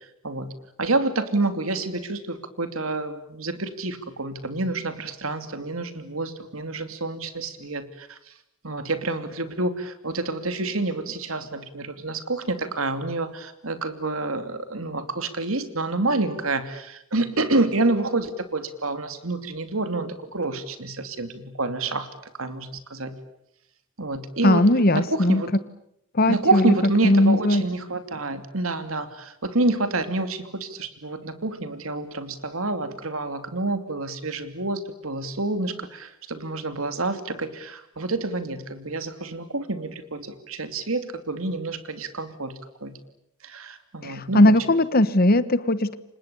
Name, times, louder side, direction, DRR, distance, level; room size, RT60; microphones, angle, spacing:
voice 1, 0.8-8.2 8.6-22.1 22.4-23.1 24.0-25.5 26.3-43.0 43.4-44.5, right 2 dB, 75° right, 9 dB, 2.8 m, -28 dB
voice 2, 24.4-25.4 26.1-26.7 27.0-27.6 44.0-46.0, left 1 dB, 45° left, 15 dB, 1.3 m, -19 dB
29.5 x 25.5 x 7.0 m, 0.78 s
head